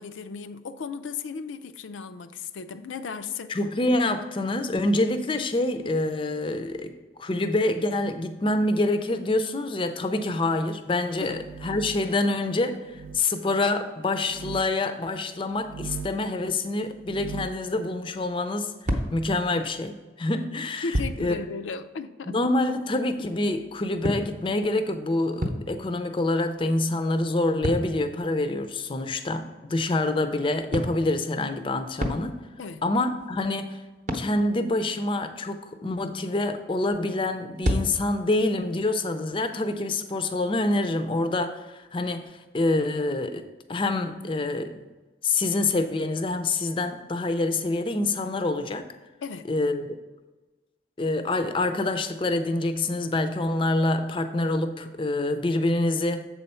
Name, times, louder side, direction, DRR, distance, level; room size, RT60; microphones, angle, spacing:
voice 1, 0.0-3.5 11.2-11.4 20.8-22.4 32.6-32.8 49.2-49.5, left 5 dB, 80° left, 11 dB, 0.4 m, -35 dB
voice 2, 3.5-6.9 7.2-20.9 21.2-21.4 22.3-32.3 32.8-33.8 34.1-42.3 42.5-44.8 45.2-48.9 49.5-50.0 51.0-56.2, left 2 dB, 25° left, 9 dB, 0.4 m, -26 dB
sound 1, 11.2-12.2 12.9-13.2 14.2-14.7 15.6-16.3 16.9-17.6, right 6 dB, 90° right, 0.3 m, -39 dB
sound 2, 18.8-19.9 20.9-21.3 23.4-26.1 26.4-29.1 30.7-32.7 33.1-33.5 34.1-34.4 37.5-38.2, equal, 40° right, 0.7 m, -31 dB
7.4 x 4.3 x 5.5 m, 1.2 s
head